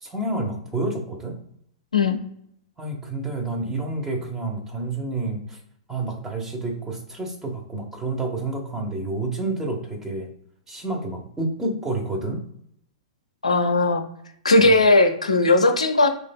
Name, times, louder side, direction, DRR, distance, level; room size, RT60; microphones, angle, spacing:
voice 1, 0.0-1.4 2.8-5.6 5.9-10.3 10.7-12.4, right 2 dB, 10° right, 0 dB, 0.8 m, -29 dB
voice 2, 13.4-14.0 14.4-16.1, left 2 dB, 80° left, 4 dB, 0.5 m, -17 dB
3.2 x 3.1 x 2.3 m, 0.71 s
figure-of-eight pair, 105°, 3 cm